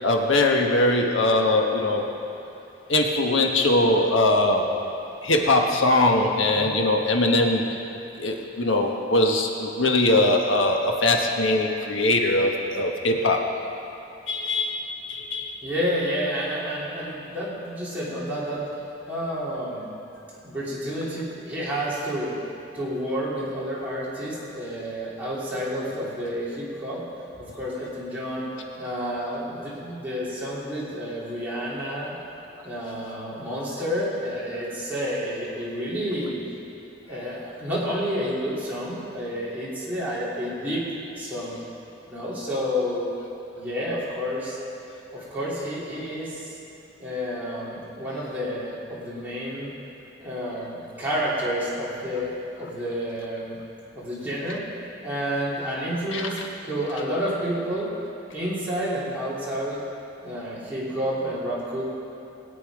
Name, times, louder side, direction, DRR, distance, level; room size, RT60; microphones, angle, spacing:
voice 1, 0.0-2.0 2.9-4.7 5.2-7.6 8.2-13.4 14.3-15.6 56.1-56.3, left 2 dB, 85° left, 2 dB, 1.3 m, -21 dB
voice 2, 15.6-18.7 19.1-19.9 20.4-22.4 22.7-27.0 27.4-28.5 28.8-32.1 32.6-36.4 37.1-40.9 41.2-41.6 42.1-43.1 43.5-44.6 45.1-46.5 47.0-49.7 50.2-53.6 53.9-54.7 55.0-56.4 56.7-57.9 58.3-59.8 60.2-61.8, equal, 10° right, -10 dB, 3.2 m, -30 dB
20.0 x 8.5 x 4.9 m, 2.8 s
head